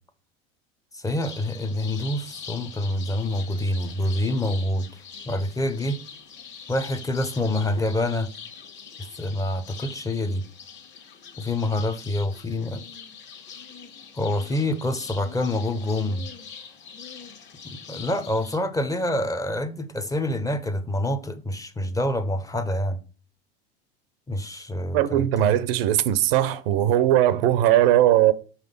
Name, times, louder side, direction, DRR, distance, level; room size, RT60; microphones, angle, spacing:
voice 1, 0.9-4.9 5.3-6.0 6.7-8.3 9.2-10.4 11.4-12.8 14.2-16.3 17.6-23.0 24.3-25.2, left 1 dB, 10° left, 0.7 m, -26 dB
sound 1, 1.0-18.6, left 6 dB, 35° left, 1.4 m, -43 dB
voice 2, 24.9-28.3, right 12 dB, 70° right, 0.7 m, -19 dB
5.7 x 3.6 x 5.2 m
hypercardioid pair, 90°, 30 cm